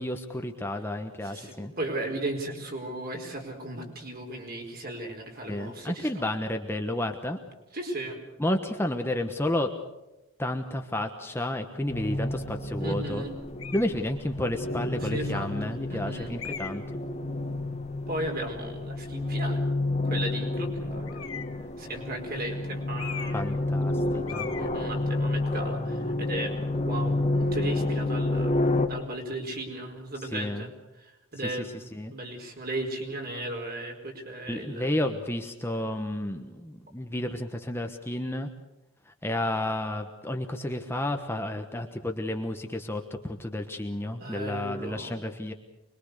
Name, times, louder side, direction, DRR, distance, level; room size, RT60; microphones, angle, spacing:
voice 1, 0.0-1.7 5.5-7.4 8.4-9.7 10.4-13.2 13.7-17.0 23.3-24.5 30.2-30.7 31.4-32.1 34.5-38.5 39.1-45.5, left 1 dB, 10° left, 4 dB, 1.2 m, -31 dB
voice 2, 1.2-6.2 7.7-8.2 12.8-13.3 15.0-16.3 18.1-19.6 20.0-21.1 21.8-23.6 24.6-30.7 31.0-31.7 32.1-35.0 44.2-45.2, right 1 dB, 45° right, 2 dB, 4.7 m, -36 dB
sound 1, 11.9-28.9, left 2 dB, 30° left, 1.6 m, -30 dB
sound 2, 13.6-14.0 14.8-14.9 16.4-16.9 21.1-21.6 23.0-23.6 23.8-24.0 24.3-24.7, left 8 dB, 70° left, 3.1 m, -39 dB
25.0 x 22.0 x 6.7 m, 0.98 s
head